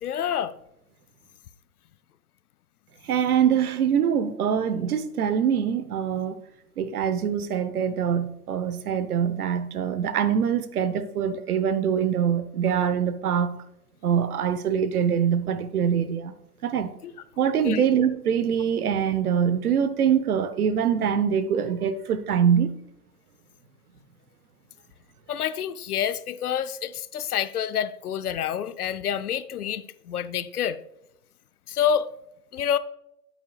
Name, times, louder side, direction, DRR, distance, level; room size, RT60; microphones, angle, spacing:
voice 1, 0.0-0.5 17.0-17.1 17.6-17.8 25.3-30.8 31.7-32.1 32.5-32.8, left 9 dB, 65° left, 0.6 m, -27 dB
voice 2, 3.0-6.4 6.8-13.6 14.0-16.3 16.6-16.9 17.4-22.7, right 8 dB, 60° right, 0.9 m, -24 dB
9.3 x 7.9 x 2.3 m
hypercardioid pair, 140°, 50 cm